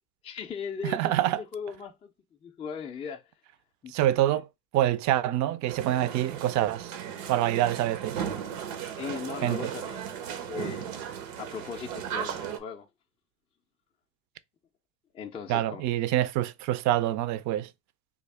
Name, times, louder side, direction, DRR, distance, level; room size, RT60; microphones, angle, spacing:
voice 1, 0.2-2.1 2.4-3.2 3.8-3.9 4.3-4.4 9.0-10.2 10.5-11.0 11.4-12.9 15.1-16.2, left 6 dB, 15° left, 0.3 m, -38 dB
voice 2, 0.8-1.4 3.9-4.5 4.7-6.9 7.3-8.2 9.4-9.7 15.5-17.7, right 13 dB, 50° right, 0.4 m, -26 dB
sound 1, 5.7-12.6, right 8 dB, 85° right, 0.9 m, -36 dB
3.5 x 2.3 x 3.3 m
supercardioid pair, 115°, 38 cm